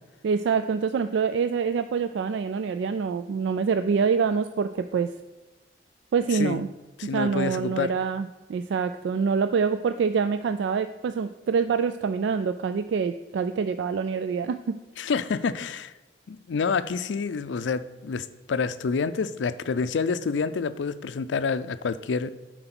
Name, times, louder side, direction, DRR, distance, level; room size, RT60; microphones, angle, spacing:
voice 1, 0.2-5.1 6.1-6.7 7.1-14.8, right 5 dB, 80° right, 11 dB, 0.3 m, -26 dB
voice 2, 7.0-7.9 15.0-15.9 16.3-22.3, left 5 dB, 85° left, 14 dB, 0.4 m, -28 dB
7.8 x 4.6 x 5.9 m, 1.1 s
head